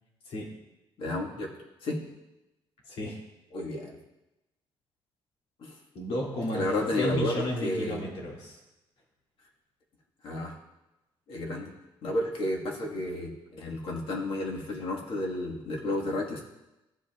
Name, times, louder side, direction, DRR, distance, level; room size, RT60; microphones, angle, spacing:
voice 1, 1.0-1.5 1.8-2.1 3.5-4.0 5.6-5.7 6.5-8.0 10.2-10.5 11.3-11.7 12.0-16.4, left 1 dB, 60° left, -1 dB, 1.6 m, -32 dB
voice 2, 2.9-3.2 5.9-6.7 7.0-8.6, equal, 85° left, -2 dB, 2.6 m, -32 dB
13.5 x 7.9 x 2.4 m, 0.96 s
cardioid pair, 150°, 10 cm